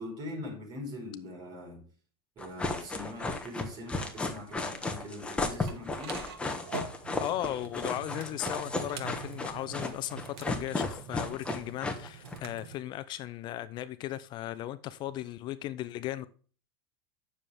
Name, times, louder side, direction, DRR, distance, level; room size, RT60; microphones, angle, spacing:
voice 1, 0.0-1.8 2.4-6.2, left 1 dB, 30° right, 4.8 m, -42 dB
sound 1, 2.4-12.4, left 3 dB, 10° left, 1.3 m, -34 dB
sound 2, 5.7-12.7, right 6 dB, 90° right, 1.7 m, -45 dB
voice 2, 7.2-16.3, left 13 dB, 35° left, 0.5 m, -37 dB
9.8 x 6.9 x 3.5 m
supercardioid pair, 145°, 13 cm